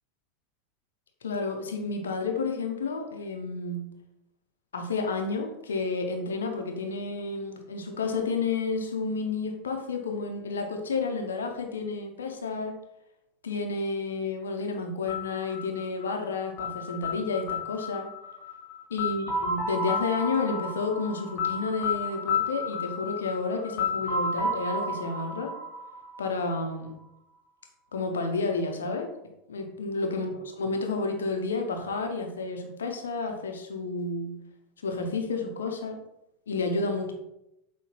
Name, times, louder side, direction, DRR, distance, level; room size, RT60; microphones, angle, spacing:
voice 1, 1.2-3.9 4.7-12.7 13.4-18.1 18.9-25.5 26.2-27.0 27.9-29.1 29.5-34.3 34.8-36.0 36.5-37.1, left 3 dB, 70° left, 4 dB, 0.5 m, -31 dB
sound 1, 15.1-26.9, left 3 dB, 25° left, 1.0 m, -32 dB
5.8 x 2.1 x 2.8 m, 0.86 s
figure-of-eight pair, 80°, 0 cm